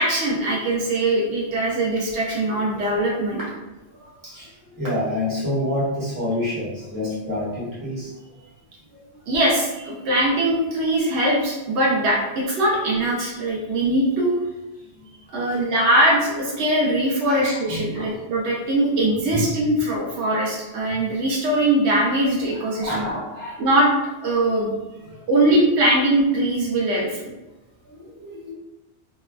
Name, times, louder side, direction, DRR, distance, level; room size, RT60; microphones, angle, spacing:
voice 1, 0.0-3.4 9.3-14.3 15.3-23.0 23.6-23.9 24.2-24.7 25.3-27.2, right 1 dB, 80° right, -3 dB, 0.9 m, -21 dB
voice 2, 2.4-2.8 3.3-3.5 3.9-8.4 8.9-9.0 14.8-15.1 15.4-15.6 17.3-18.1 19.3-19.5 20.9-21.0 22.5-23.6 25.0-25.2 27.8-28.5, left 1 dB, 20° right, -9 dB, 1.1 m, -29 dB
3.2 x 2.2 x 2.2 m, 1.1 s
omnidirectional pair, 1.1 m